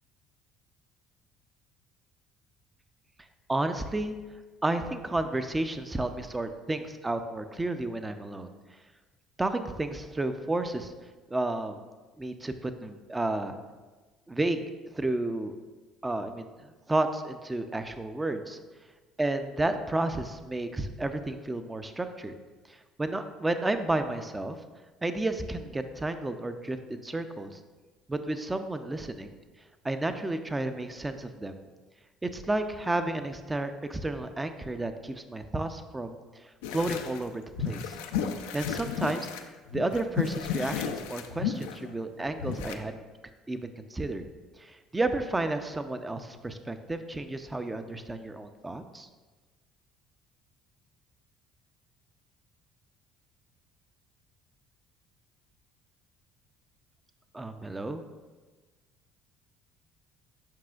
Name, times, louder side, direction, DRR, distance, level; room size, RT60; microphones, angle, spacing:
voice 1, 3.5-4.1 4.6-8.5 9.4-10.9 11.3-11.8 12.2-13.5 14.3-14.7 14.9-15.5 16.0-18.6 19.2-22.3 22.7-24.6 25.0-27.6 28.1-29.3 29.8-31.6 32.2-36.2 36.4-37.9 38.5-39.3 39.7-43.0 43.5-44.3 44.6-49.1 57.3-58.0, right 2 dB, 15° right, 9 dB, 0.5 m, -32 dB
sound 1, 36.6-37.2 37.5-39.4 39.7-42.7, left 8 dB, 85° left, 0.4 m, -33 dB
7.5 x 5.5 x 2.4 m, 1.3 s
supercardioid pair, 75°, 0 cm